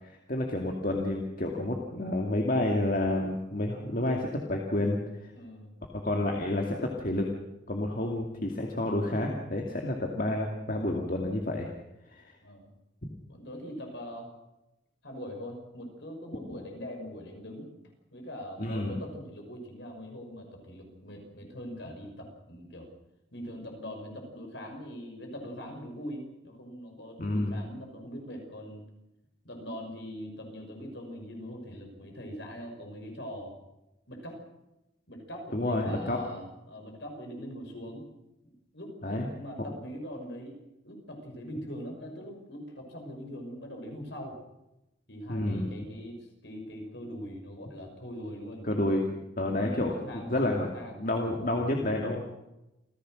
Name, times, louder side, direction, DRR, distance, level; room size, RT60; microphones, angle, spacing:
voice 1, 0.0-5.0 6.0-7.3 7.7-11.7 12.1-12.2 13.0-13.1 18.6-19.0 27.2-27.5 35.5-36.2 39.0-39.3 45.3-45.9 48.7-49.0 49.4-50.7 51.0-52.3, left 1 dB, 45° left, 1 dB, 2.3 m, -29 dB
voice 2, 5.3-5.7 12.4-12.7 13.3-14.3 15.0-17.7 18.1-22.9 23.3-28.9 29.4-33.6 34.1-34.4 35.1-38.1 38.4-40.6 40.8-44.4 45.1-48.7 49.5-51.6, equal, 60° left, 3 dB, 6.0 m, -42 dB
28.5 x 15.5 x 6.4 m, 0.93 s
head